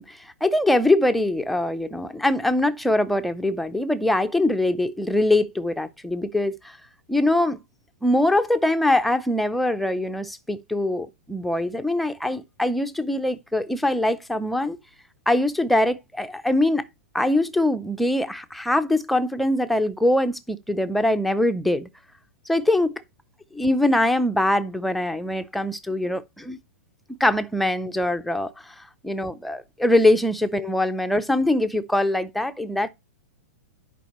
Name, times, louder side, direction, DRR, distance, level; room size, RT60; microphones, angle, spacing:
voice 1, 0.0-6.8 7.1-7.6 8.0-14.8 15.3-16.8 17.1-21.9 22.5-23.0 23.5-26.6 27.1-28.5 29.0-32.9, left 1 dB, ahead, 0.5 m, -23 dB
10.0 x 5.2 x 3.0 m
hypercardioid pair, 160°, 8 cm